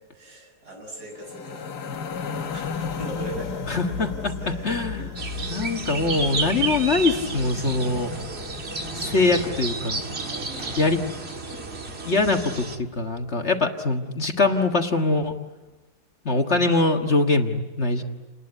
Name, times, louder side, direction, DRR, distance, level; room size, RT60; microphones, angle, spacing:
voice 1, 0.1-2.2 2.5-5.6 10.5-10.8 17.9-18.0, equal, 70° right, 1 dB, 8.2 m, -40 dB
sound 1, 1.2-10.5, left 5 dB, 75° left, 1.7 m, -35 dB
voice 2, 3.7-4.1 4.6-5.1 5.5-8.1 8.9-10.0 10.8-11.0 12.0-15.3 16.3-18.0, left 3 dB, 45° left, 4 dB, 1.8 m, -23 dB
sound 2, 5.2-12.8, right 4 dB, 40° right, 1.9 m, -32 dB
sound 3, 7.1-13.3, equal, 15° right, 6.8 m, -42 dB
29.0 x 20.0 x 9.8 m, 1.1 s
omnidirectional pair, 1.7 m